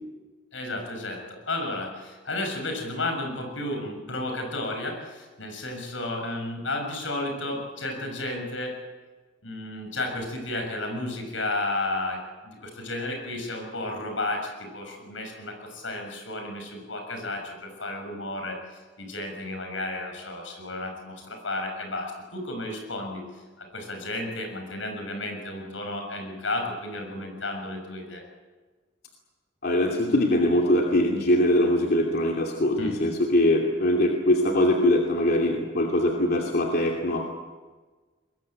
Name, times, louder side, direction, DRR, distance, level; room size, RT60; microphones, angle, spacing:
voice 1, 0.5-8.8 9.4-18.6 19.0-23.2 23.6-28.2 32.8-33.2, left 2 dB, 80° left, 4 dB, 6.9 m, -32 dB
voice 2, 29.6-37.4, left 1 dB, 55° left, 0 dB, 2.7 m, -22 dB
23.0 x 21.5 x 8.9 m, 1.3 s
head